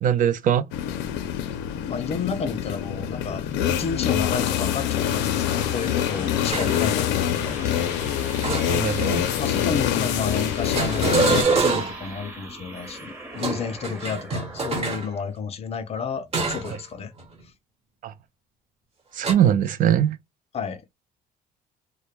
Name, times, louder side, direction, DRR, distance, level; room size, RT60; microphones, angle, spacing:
voice 1, 0.0-0.7 8.7-9.3 16.7-16.8 18.0-18.1 19.1-20.2, right 9 dB, 50° right, 0.4 m, -21 dB
sound 1, 0.7-11.4, left 10 dB, 90° left, 0.4 m, -25 dB
voice 2, 1.9-7.7 9.4-17.1 20.5-20.8, left 6 dB, 35° left, 0.5 m, -31 dB
sound 2, 3.6-16.8, right 1 dB, 15° right, 0.9 m, -42 dB
sound 3, 6.5-6.9 8.4-9.2 10.7-12.1 13.3-15.1 16.3-16.8 17.2-17.4 19.2-19.3, right 4 dB, 35° right, 1.1 m, -25 dB
2.2 x 2.1 x 3.0 m
cardioid pair, 110°, 17 cm